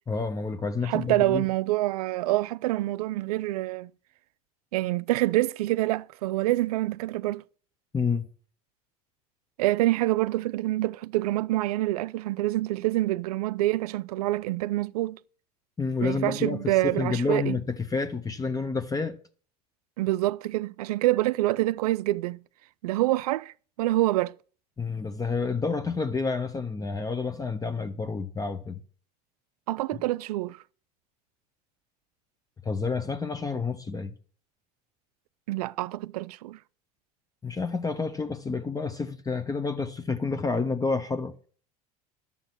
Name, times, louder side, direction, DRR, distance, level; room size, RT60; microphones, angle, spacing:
voice 1, 0.1-1.4 7.9-8.3 15.8-19.2 24.8-28.8 29.9-30.0 32.6-34.1 37.4-41.3, left 4 dB, 20° left, 1.0 m, -29 dB
voice 2, 0.9-3.9 4.7-7.4 9.6-15.2 16.0-17.6 20.0-22.4 22.8-24.3 29.7-30.6 35.5-36.6, right 17 dB, 75° right, 0.5 m, -26 dB
11.5 x 7.2 x 6.1 m
hypercardioid pair, 80°, 20 cm